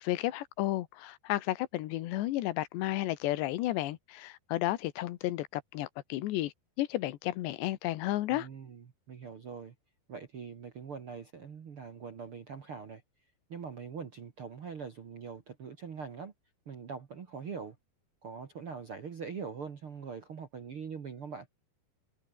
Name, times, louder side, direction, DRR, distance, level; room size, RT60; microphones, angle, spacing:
voice 1, 0.0-8.5, left 15 dB, 80° left, 3.3 m, -32 dB
voice 2, 8.3-9.7 10.1-13.0 13.5-16.3 16.6-17.8 18.2-21.5, right 6 dB, 50° right, 1.7 m, -43 dB
omnidirectional pair, 5.0 m